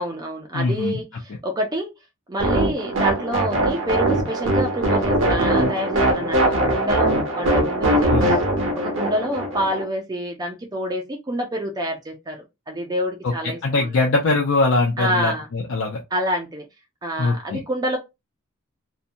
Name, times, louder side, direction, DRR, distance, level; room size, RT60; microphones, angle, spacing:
voice 1, 0.0-1.9 2.3-8.4 8.8-12.4 12.7-14.0 15.0-15.5 16.1-16.7 17.0-18.0, equal, 20° right, 0.4 m, -27 dB
voice 2, 0.5-1.0 8.1-8.3 13.6-16.0 17.2-17.6, left 3 dB, 65° left, 0.5 m, -21 dB
sound 1, 2.4-9.8, right 1 dB, 65° right, 0.8 m, -21 dB
2.7 x 2.1 x 2.5 m
head